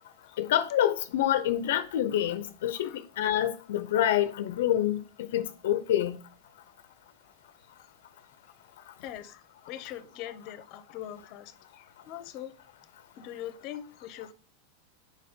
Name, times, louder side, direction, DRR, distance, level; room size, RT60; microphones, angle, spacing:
voice 1, 0.4-5.0 5.3-6.2, left 11 dB, 75° left, 0.6 m, -27 dB
voice 2, 2.7-3.1 7.6-7.7 9.0-12.5 13.2-14.3, left 11 dB, 40° left, 0.8 m, -42 dB
5.2 x 4.0 x 5.1 m
supercardioid pair, 150°, 0 cm